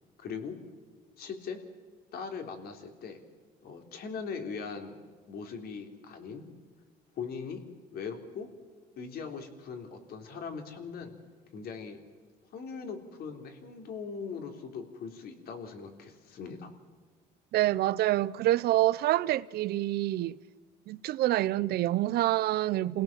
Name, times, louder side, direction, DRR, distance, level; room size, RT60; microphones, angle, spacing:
voice 1, 0.2-0.6 1.2-1.6 2.1-3.2 3.6-5.0 5.3-6.4 7.2-7.6 7.9-8.5 9.0-11.1 11.5-12.0 12.5-16.7, left 5 dB, 65° left, 3.6 m, -40 dB
voice 2, 17.5-20.4 20.9-23.0, right 15 dB, 70° right, 0.7 m, -27 dB
28.5 x 17.5 x 7.4 m
cardioid pair, 110°, 17 cm